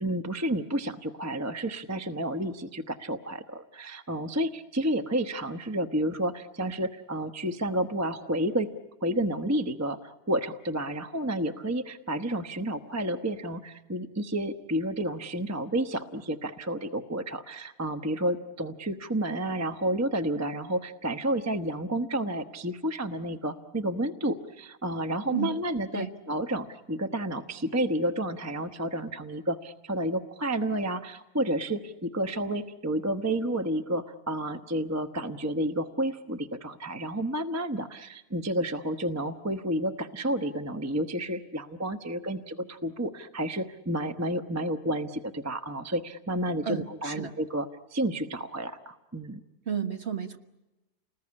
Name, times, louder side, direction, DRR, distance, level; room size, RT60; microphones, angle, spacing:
voice 1, 0.0-8.7 9.0-49.4, right 1 dB, 15° right, 9 dB, 0.8 m, -30 dB
voice 2, 46.6-47.3 49.6-50.4, right 7 dB, 45° right, 7 dB, 1.5 m, -32 dB
29.5 x 20.0 x 9.8 m, 1.0 s
omnidirectional pair, 1.7 m